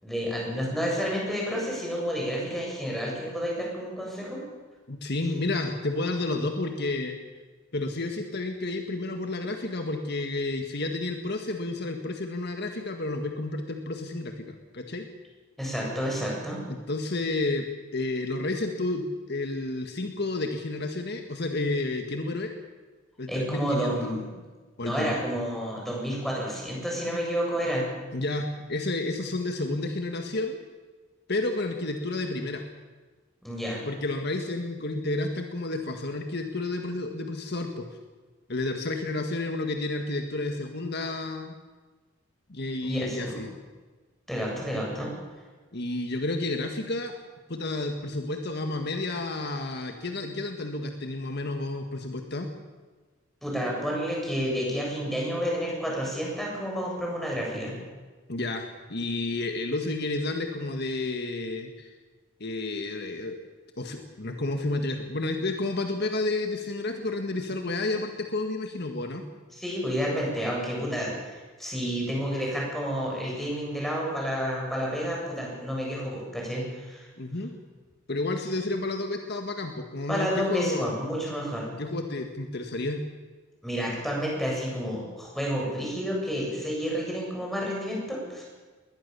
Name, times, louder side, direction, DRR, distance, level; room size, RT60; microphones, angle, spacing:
voice 1, 0.0-4.4 15.6-16.6 23.3-24.3 24.8-27.8 33.4-33.8 42.8-43.4 44.3-45.1 53.4-57.8 69.6-77.1 80.1-81.7 83.6-88.4, equal, ahead, -3 dB, 7.7 m, -30 dB
voice 2, 4.9-7.2 7.7-15.1 16.7-22.5 23.2-24.2 24.8-25.2 28.1-30.6 31.3-32.6 33.9-37.9 38.5-41.5 42.5-43.5 45.7-47.2 47.5-52.5 58.3-61.9 62.4-63.4 63.8-69.2 77.2-77.6 78.1-80.9 81.8-83.0, left 2 dB, 55° left, 5 dB, 1.8 m, -31 dB
21.5 x 19.0 x 7.0 m, 1.3 s
head